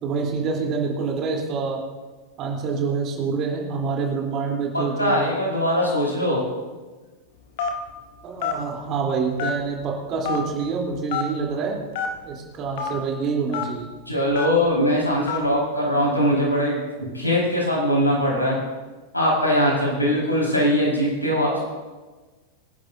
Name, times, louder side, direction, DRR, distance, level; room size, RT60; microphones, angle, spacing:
voice 1, 0.0-1.8 2.4-5.3 8.2-11.8 12.2-13.9, right 5 dB, 35° right, -1 dB, 3.3 m, -26 dB
voice 2, 4.7-6.4 14.1-18.6 19.1-21.6, equal, 85° left, -4 dB, 4.8 m, -21 dB
Telephone, 7.6-7.9 8.4-8.6 9.4-9.8 10.2-10.4 11.1-11.3 11.9-12.1 12.8-12.9 13.5-13.6 14.3-14.6 15.3-15.5, left 8 dB, 50° left, 1.5 m, -26 dB
26.0 x 10.5 x 2.7 m, 1.3 s
figure-of-eight pair, 90°, 0 cm